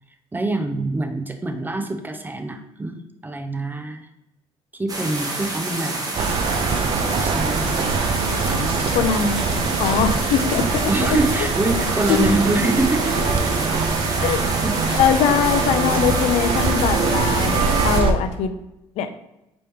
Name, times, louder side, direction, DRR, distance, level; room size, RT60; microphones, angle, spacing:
voice 1, 0.3-4.1 4.7-8.2 8.5-9.1 10.9-14.9, right 2 dB, 15° right, 6 dB, 0.6 m, -26 dB
sound 1, 4.9-18.0, right 2 dB, 35° right, 1.1 m, -28 dB
sound 2, 6.2-18.1, right 4 dB, 55° right, 0.6 m, -23 dB
voice 2, 8.9-9.4 9.8-10.9 12.1-12.3 14.2-14.4 14.9-18.5 19.0-19.1, left 8 dB, 85° left, 9 dB, 0.4 m, -21 dB
4.9 x 3.0 x 3.4 m, 0.89 s
cardioid pair, 95°, 11 cm